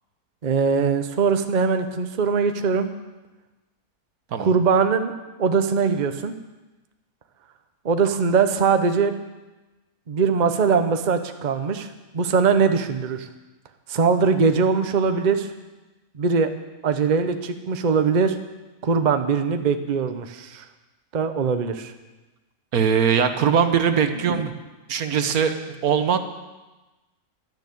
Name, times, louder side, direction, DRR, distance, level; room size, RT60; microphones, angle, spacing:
voice 1, 0.4-2.9 4.4-5.1 5.4-6.3 7.8-9.1 10.1-13.3 13.9-15.5 16.1-16.5 16.8-18.4 18.8-20.6 21.1-21.9 24.3-24.5, right 5 dB, 35° right, 8 dB, 0.8 m, -21 dB
voice 2, 22.7-24.4 24.9-25.5 25.8-26.2, right 7 dB, 70° right, 8 dB, 1.4 m, -20 dB
12.0 x 10.5 x 8.5 m, 1.1 s
omnidirectional pair, 1.6 m